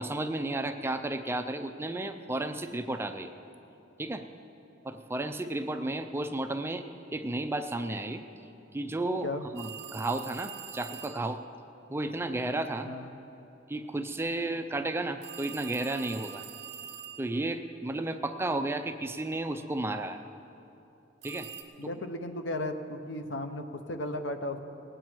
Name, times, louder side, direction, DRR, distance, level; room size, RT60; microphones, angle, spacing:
voice 1, 0.0-3.3 4.0-4.2 4.8-6.8 7.1-8.2 8.7-9.3 9.5-11.4 11.9-12.9 13.7-16.4 17.2-20.2 21.2-21.5 21.8-21.9, right 2 dB, 15° right, 7 dB, 0.5 m, -33 dB
sound 1, 9.6-11.3 15.2-17.5 21.2-21.6, right 9 dB, 60° right, 1.4 m, -44 dB
voice 2, 21.8-24.6, left 1 dB, 75° left, 7 dB, 0.9 m, -35 dB
20.0 x 9.0 x 4.6 m, 2.8 s
head